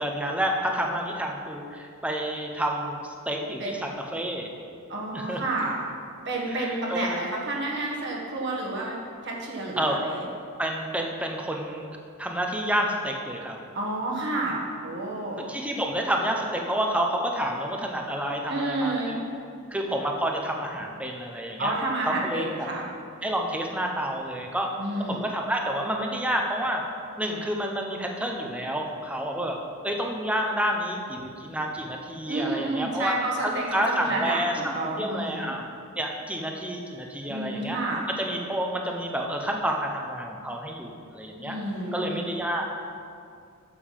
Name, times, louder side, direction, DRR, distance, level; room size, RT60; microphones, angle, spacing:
voice 1, 0.0-4.5 5.1-5.4 6.5-7.2 9.8-10.0 10.6-11.9 12.2-13.6 15.5-19.2 19.7-21.7 22.1-22.7 23.2-24.7 25.1-26.8 27.2-29.6 29.8-33.1 33.4-34.7 35.0-35.7 36.0-37.8 38.2-41.6 41.9-42.7, equal, 5° right, 1 dB, 0.9 m, -29 dB
voice 2, 4.9-5.8 6.2-10.3 13.7-15.5 18.5-19.2 21.6-22.9 24.8-25.3 32.3-35.5 37.3-38.0 41.4-42.2, right 2 dB, 50° right, -3 dB, 1.6 m, -30 dB
8.7 x 6.9 x 7.4 m, 2.4 s
head